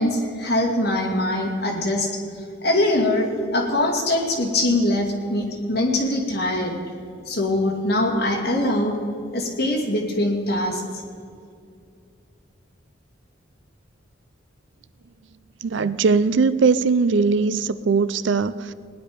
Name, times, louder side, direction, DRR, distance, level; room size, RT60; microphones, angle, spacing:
voice 1, 0.0-2.1 2.6-6.8 7.3-9.0 9.3-11.0, left 1 dB, 55° left, -1 dB, 2.3 m, -22 dB
voice 2, 15.6-18.7, right 4 dB, 70° right, 15 dB, 0.4 m, -20 dB
18.5 x 10.5 x 5.1 m, 2.4 s
head